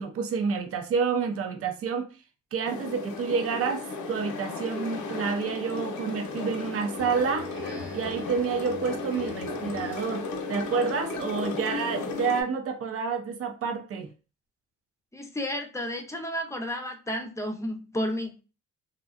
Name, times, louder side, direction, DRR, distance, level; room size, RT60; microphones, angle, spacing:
voice 1, 0.0-2.1 2.5-7.5 7.9-10.2 10.5-14.1, right 5 dB, 50° right, 5 dB, 0.6 m, -29 dB
sound 1, 2.6-12.4, left 3 dB, 75° left, 0.7 m, -35 dB
Speech synthesizer, 6.9-10.3, left 1 dB, 35° right, 1.0 m, -47 dB
voice 2, 15.1-18.4, equal, 10° left, 3 dB, 0.5 m, -32 dB
2.6 x 2.1 x 2.4 m, 0.33 s
cardioid pair, 90°, 30 cm